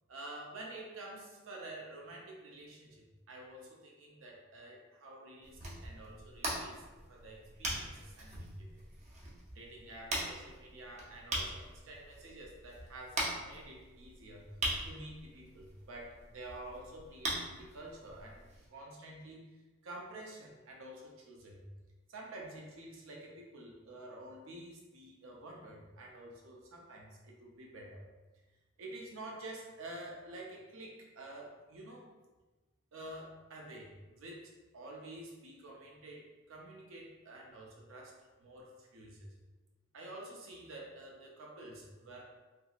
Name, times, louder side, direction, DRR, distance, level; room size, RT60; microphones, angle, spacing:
voice 1, 0.1-6.8 7.1-8.8 9.5-14.6 14.8-21.7 22.1-28.1 28.8-32.1 32.9-39.3 39.9-42.4, right 1 dB, 75° right, -1 dB, 0.6 m, -49 dB
sound 1, 5.4-18.7, right 1 dB, 35° right, 0.5 m, -41 dB
2.9 x 2.6 x 2.4 m, 1.2 s
head